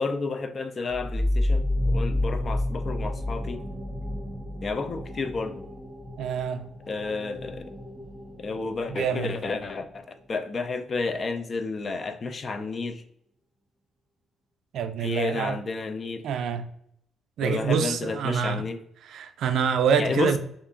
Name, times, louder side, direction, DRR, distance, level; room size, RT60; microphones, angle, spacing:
voice 1, 0.0-3.6 4.6-5.7 6.9-7.8 8.4-13.0 15.0-16.2 17.4-18.8 20.0-20.4, left 3 dB, 45° left, 0.3 m, -31 dB
sound 1, 0.8-10.2, left 1 dB, ahead, 1.1 m, -30 dB
voice 2, 6.2-6.6 8.9-9.3 14.7-15.6 16.2-16.6 17.4-18.6 19.1-20.4, right 7 dB, 75° right, 0.3 m, -26 dB
2.7 x 2.4 x 2.4 m
cardioid pair, 85°, 0 cm